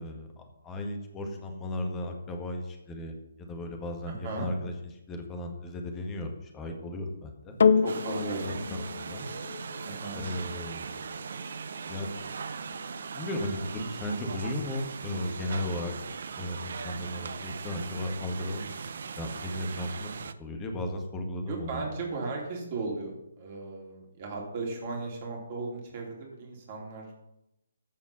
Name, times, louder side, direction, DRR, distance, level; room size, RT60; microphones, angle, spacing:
voice 1, 0.0-4.7 5.1-7.6 8.4-8.6 9.0-9.3 10.1-10.9 11.9-12.1 13.1-15.9 16.4-21.8, left 1 dB, 15° left, 4 dB, 1.7 m, -35 dB
voice 2, 4.1-4.5 7.8-8.6 9.9-10.2 21.5-27.1, right 3 dB, 35° right, -1 dB, 3.4 m, -36 dB
sound 1, 7.6-16.2 16.9-17.0, left 6 dB, 55° left, 0.5 m, -32 dB
sound 2, 7.9-20.3, right 5 dB, 50° right, 0.6 m, -39 dB
14.5 x 5.1 x 5.6 m, 0.86 s
figure-of-eight pair, 140°, 0 cm